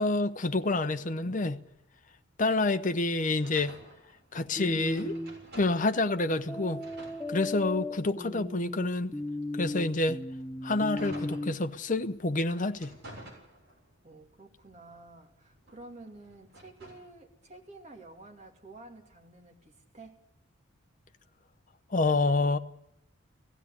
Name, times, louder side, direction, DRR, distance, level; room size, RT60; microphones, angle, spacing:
voice 1, 0.0-1.6 2.4-3.8 4.3-5.1 5.5-6.8 7.3-9.2 9.6-10.2 10.6-12.9 21.9-22.6, left 2 dB, 40° left, 0.8 m, -28 dB
sound 1, 3.4-6.0 6.3-7.9 8.5-11.9 12.4-14.0 14.4-17.1, right 1 dB, 55° right, 6.9 m, -51 dB
voice 2, 4.5-5.0 14.0-20.2, right 2 dB, 35° right, 2.5 m, -50 dB
sound 2, 4.6-5.4 6.5-11.5, left 2 dB, 5° left, 0.7 m, -36 dB
17.0 x 16.0 x 9.8 m
head